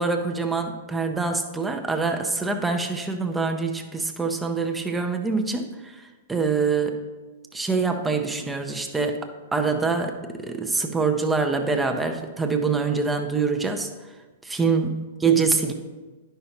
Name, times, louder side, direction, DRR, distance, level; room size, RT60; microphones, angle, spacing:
voice 1, 0.0-5.9 6.3-7.0 7.5-13.9 14.4-15.7, right 4 dB, 10° right, 4 dB, 0.6 m, -25 dB
10.5 x 5.6 x 2.9 m, 1.3 s
figure-of-eight pair, 105°, 0 cm